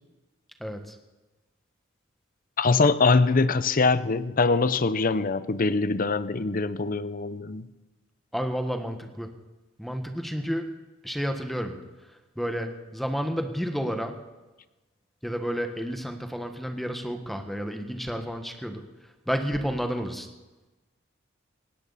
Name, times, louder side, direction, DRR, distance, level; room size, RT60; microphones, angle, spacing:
voice 1, 0.6-0.9 8.3-9.3 9.8-10.7 11.0-11.7 12.4-14.2 15.2-18.8 19.3-20.3, equal, ahead, 1.4 m, -30 dB
voice 2, 2.6-7.7, left 3 dB, 45° left, 0.7 m, -23 dB
19.0 x 16.5 x 4.2 m
head